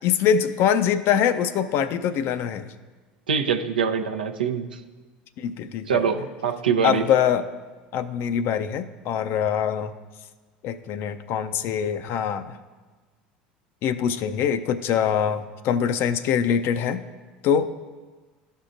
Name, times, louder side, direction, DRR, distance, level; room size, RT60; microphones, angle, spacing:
voice 1, 0.0-2.7 5.4-6.1 6.8-7.5 7.9-9.9 10.6-12.6 13.8-17.0 17.4-17.7, left 8 dB, 55° left, 12 dB, 0.4 m, -23 dB
voice 2, 3.3-4.7 5.9-7.1, right 6 dB, 90° right, 5 dB, 0.5 m, -24 dB
13.0 x 5.4 x 2.5 m, 1.3 s
hypercardioid pair, 75°, 5 cm